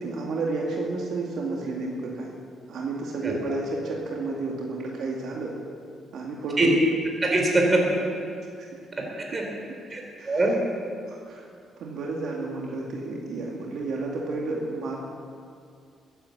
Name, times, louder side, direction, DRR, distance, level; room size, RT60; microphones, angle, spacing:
voice 1, 0.0-2.3 2.7-5.5 6.1-6.8 10.2-10.4 11.1-11.5 11.8-15.0, right 3 dB, 70° right, -2 dB, 2.3 m, -31 dB
voice 2, 7.2-7.9 9.0-9.5 9.9-10.6, right 2 dB, 30° right, 0 dB, 4.3 m, -23 dB
14.0 x 10.5 x 8.1 m, 2.3 s
cardioid pair, 90°, 0 cm